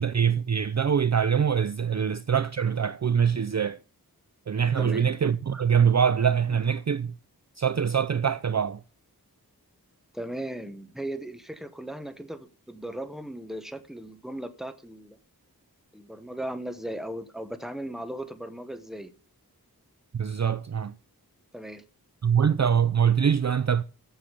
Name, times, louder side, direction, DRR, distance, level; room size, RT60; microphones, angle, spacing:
voice 1, 0.0-3.8 4.5-7.1 7.6-8.8 20.1-21.0 22.2-23.8, right 7 dB, 45° right, 0.4 m, -24 dB
voice 2, 4.8-5.1 10.1-15.2 15.9-19.1 21.5-21.8, right 1 dB, ahead, 1.1 m, -37 dB
7.9 x 7.1 x 6.8 m
wide cardioid pair, 40°, 38 cm